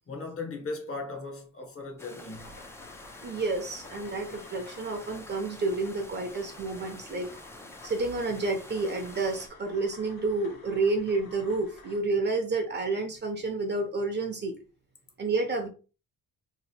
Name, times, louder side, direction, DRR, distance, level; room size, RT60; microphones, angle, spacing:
voice 1, 0.1-2.5, left 3 dB, 40° left, 0.9 m, -37 dB
sound 1, 2.0-9.5, left 2 dB, 10° left, 0.3 m, -47 dB
sound 2, 2.3-12.0, left 3 dB, 85° left, 1.3 m, -52 dB
voice 2, 3.2-7.3 7.8-14.5 15.2-15.7, right 3 dB, 30° right, 0.6 m, -30 dB
2.9 x 2.5 x 4.1 m
cardioid pair, 165°, 35 cm